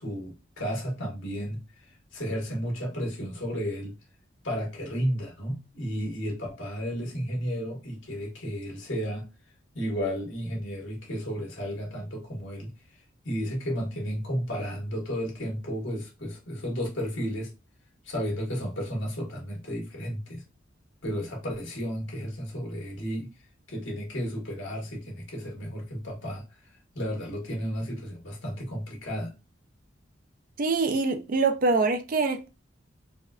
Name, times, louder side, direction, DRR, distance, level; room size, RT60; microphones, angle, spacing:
voice 1, 0.0-3.9 4.4-9.3 9.7-12.7 13.2-17.5 18.0-20.4 21.0-23.3 23.7-26.4 26.9-29.3, equal, 75° left, 1.4 m, -33 dB
voice 2, 30.6-32.5, right 3 dB, 45° right, 0.4 m, -24 dB
4.2 x 2.4 x 2.3 m
head